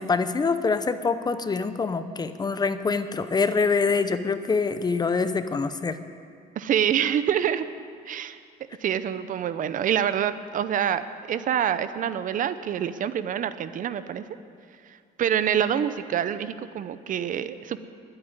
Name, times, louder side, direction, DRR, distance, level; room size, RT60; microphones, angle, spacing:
voice 1, 0.0-6.0, left 4 dB, 25° left, 11 dB, 0.6 m, -25 dB
voice 2, 6.6-7.6 8.1-8.4 8.8-14.2 14.9-17.8, right 9 dB, 50° right, 13 dB, 0.6 m, -26 dB
12.0 x 8.7 x 9.6 m, 2.2 s
cardioid pair, 110°, 17 cm